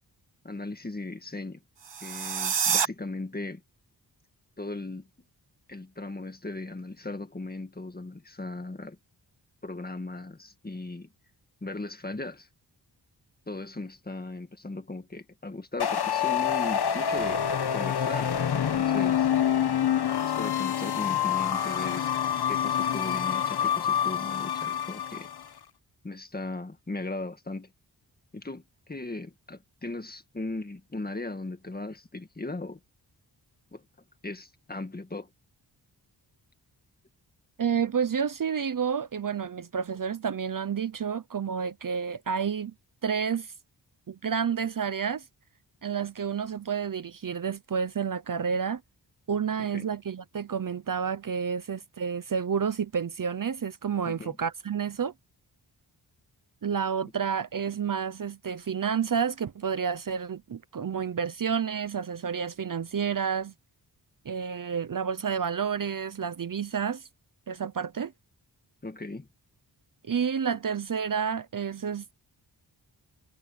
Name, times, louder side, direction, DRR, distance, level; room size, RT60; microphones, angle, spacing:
voice 1, 0.4-1.6 2.0-3.6 4.6-5.1 5.7-9.0 9.6-11.1 11.6-12.5 13.5-17.4 17.7-19.3 20.2-22.0 22.5-25.3 26.0-27.7 28.3-32.8 33.7-33.8 34.2-35.3 49.7-49.9 54.0-54.4 68.8-69.3, left 2 dB, 20° left, 2.0 m, -37 dB
sound 1, 1.8-2.9, right 7 dB, 85° right, 2.0 m, -27 dB
sound 2, 15.8-25.4, left 9 dB, 65° left, 1.1 m, -27 dB
voice 2, 37.6-42.7 43.0-43.5 44.1-45.2 45.8-48.8 49.3-55.1 56.6-63.5 64.2-67.0 67.5-68.1 70.0-72.1, right 7 dB, 50° right, 0.8 m, -30 dB
wide cardioid pair, 145°, 42 cm